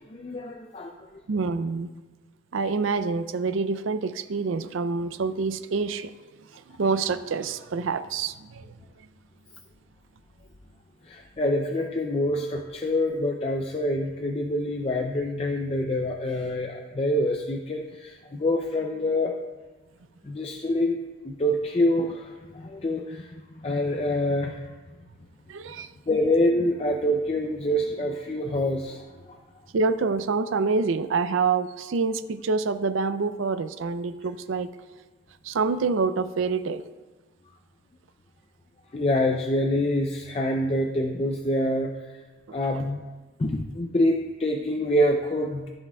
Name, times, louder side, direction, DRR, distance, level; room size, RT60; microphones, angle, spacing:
voice 1, 0.1-1.2 11.0-19.4 20.2-24.7 26.1-29.4 38.9-42.2 42.5-43.0 43.4-45.7, left 1 dB, 30° left, 2 dB, 0.4 m, -26 dB
voice 2, 1.3-1.9 2.5-8.8 25.5-25.9 29.7-34.8 35.4-36.8 42.5-42.6, right 4 dB, 75° right, 12 dB, 0.4 m, -27 dB
14.5 x 7.2 x 2.3 m, 1.3 s
head